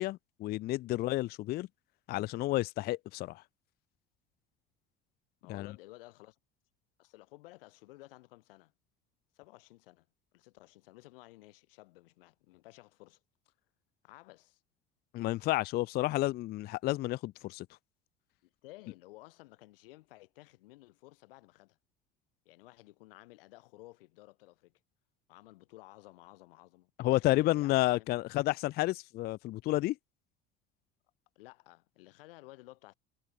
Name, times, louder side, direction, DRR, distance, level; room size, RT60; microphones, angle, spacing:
voice 1, 0.0-1.7 2.1-3.4 5.5-5.7 15.1-17.7 27.0-30.0, left 17 dB, 30° left, 0.4 m, -31 dB
voice 2, 5.4-6.4 7.0-8.7 9.3-10.1 10.3-13.5 14.0-14.6 18.4-21.8 22.4-24.8 25.3-28.2 31.3-32.9, left 20 dB, 65° left, 6.8 m, -55 dB
figure-of-eight pair, 60°, 31 cm